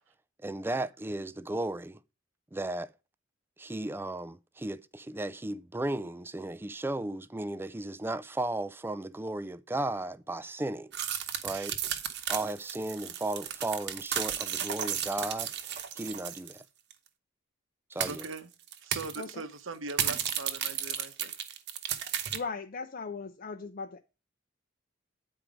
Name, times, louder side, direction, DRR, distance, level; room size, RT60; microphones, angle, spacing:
voice 1, 0.4-2.0 2.5-2.9 3.6-10.9 11.4-11.8 12.3-16.6 17.9-18.3, right 2 dB, 10° right, 0.3 m, -35 dB
sound 1, 10.9-16.6 16.9-17.0 18.0-18.4 18.7-19.3 19.9-22.4, right 9 dB, 60° right, 1.0 m, -34 dB
voice 2, 18.1-18.5 18.8-21.3, right 3 dB, 90° right, 1.0 m, -40 dB
voice 3, 22.1-24.0, left 4 dB, 45° left, 0.6 m, -39 dB
8.9 x 4.7 x 5.0 m
head